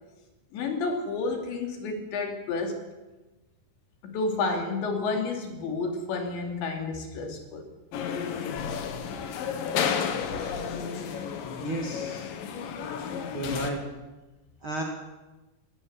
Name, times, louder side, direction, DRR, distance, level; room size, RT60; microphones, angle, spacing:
voice 1, 0.5-2.8 4.0-7.7, left 3 dB, 85° left, 4 dB, 5.1 m, -30 dB
sound 1, 7.9-13.7, left 7 dB, 60° left, 2.9 m, -32 dB
voice 2, 11.6-12.3 13.3-13.8 14.6-14.8, right 1 dB, 35° right, 0 dB, 2.5 m, -33 dB
18.5 x 16.0 x 9.6 m, 1.1 s
omnidirectional pair, 5.0 m